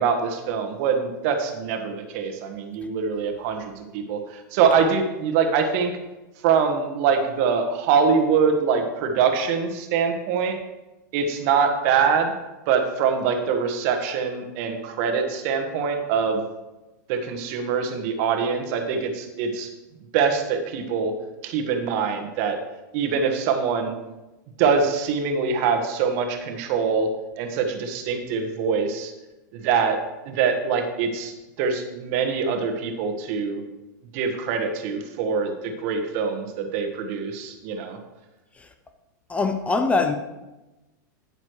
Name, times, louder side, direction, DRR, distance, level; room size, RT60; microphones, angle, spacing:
voice 1, 0.0-5.9 6.4-10.6 11.1-12.3 12.7-16.4 17.1-19.7 20.1-21.1 21.4-22.6 22.9-23.9 24.6-27.1 27.4-29.1 29.5-30.0 30.2-31.3 31.6-33.6 34.1-38.0, right 6 dB, 50° right, 1.5 m, -24 dB
voice 2, 39.3-40.1, left 3 dB, 10° left, 0.5 m, -22 dB
9.7 x 9.2 x 3.2 m
supercardioid pair, 135°, 10 cm